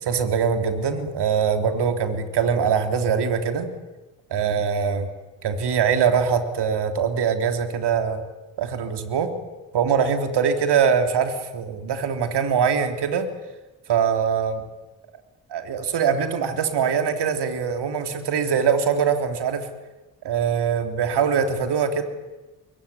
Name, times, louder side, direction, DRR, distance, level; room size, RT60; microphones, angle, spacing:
voice 1, 0.0-3.7 4.3-5.1 5.4-8.2 8.6-9.3 9.7-13.3 13.9-14.6 15.5-19.7 20.2-22.0, right 6 dB, 60° right, 7 dB, 3.4 m, -22 dB
27.0 x 22.5 x 9.7 m, 1.1 s
hypercardioid pair, 45°, 47 cm